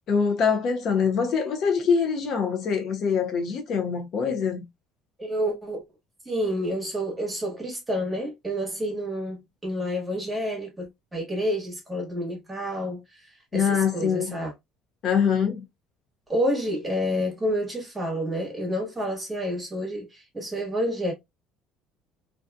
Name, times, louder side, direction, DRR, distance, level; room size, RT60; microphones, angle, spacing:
voice 1, 0.1-4.6 13.5-14.3 15.0-15.6, left 6 dB, 50° left, 0.6 m, -24 dB
voice 2, 5.2-5.8 6.2-14.5 16.3-21.1, equal, 10° right, 1.2 m, -29 dB
2.6 x 2.3 x 2.2 m
cardioid pair, 125°, 0 cm